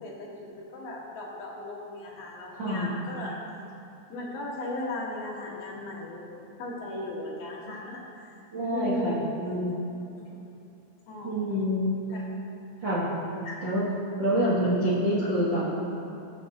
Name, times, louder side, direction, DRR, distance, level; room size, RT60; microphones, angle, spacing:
voice 1, 0.0-3.4 4.1-8.3 8.7-9.4 10.2-10.4 11.1-11.5 12.1-12.2 13.4-13.6, left 1 dB, 60° left, -4 dB, 3.4 m, -37 dB
voice 2, 2.6-2.9 8.5-9.8 11.2-12.0 12.8-13.1 13.6-13.8 14.2-15.7, equal, 80° right, -8 dB, 1.0 m, -26 dB
21.0 x 8.0 x 3.0 m, 2.8 s
omnidirectional pair, 5.2 m